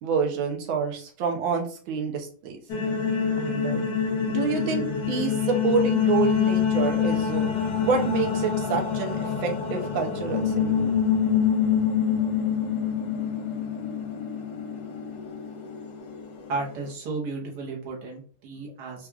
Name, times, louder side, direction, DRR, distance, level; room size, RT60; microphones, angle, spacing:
voice 1, 0.0-2.6 3.4-3.8 4.3-7.5 7.8-10.9, right 6 dB, 75° right, 3 dB, 1.5 m, -28 dB
sound 1, 2.7-16.8, left 7 dB, 70° left, 1.0 m, -26 dB
voice 2, 16.5-19.1, right 3 dB, 60° right, -2 dB, 1.5 m, -33 dB
4.5 x 2.4 x 2.3 m, 0.43 s
omnidirectional pair, 2.3 m